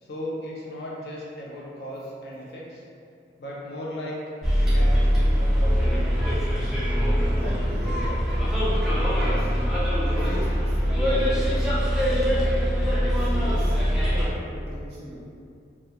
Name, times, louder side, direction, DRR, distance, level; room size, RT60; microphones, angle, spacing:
voice 1, 0.0-2.8 3.4-4.2 4.6-6.4, equal, 70° left, -4 dB, 0.5 m, -36 dB
Bus, 4.4-14.3, equal, 5° right, 0.3 m, -22 dB
voice 2, 7.2-9.5 10.0-12.3 13.1-15.2, equal, 65° right, -7 dB, 0.7 m, -40 dB
2.4 x 2.2 x 2.7 m, 2.4 s
head